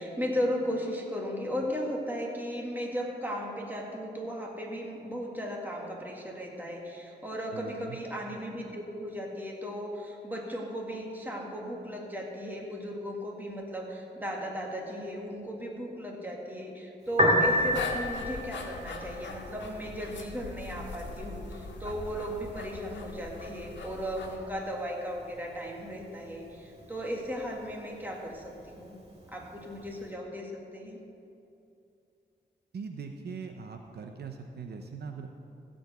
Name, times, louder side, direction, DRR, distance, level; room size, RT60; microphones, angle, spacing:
voice 1, 0.0-29.0 29.3-31.0, equal, 10° right, -1 dB, 2.0 m, -36 dB
voice 2, 7.5-8.0 32.7-35.3, right 5 dB, 60° right, 4 dB, 0.7 m, -41 dB
Piano, 17.0-30.1, equal, 35° right, 2.2 m, -35 dB
sound 1, 17.5-24.4, left 3 dB, 75° left, 1.5 m, -41 dB
15.5 x 5.2 x 8.0 m, 2.7 s
wide cardioid pair, 95°, 19 cm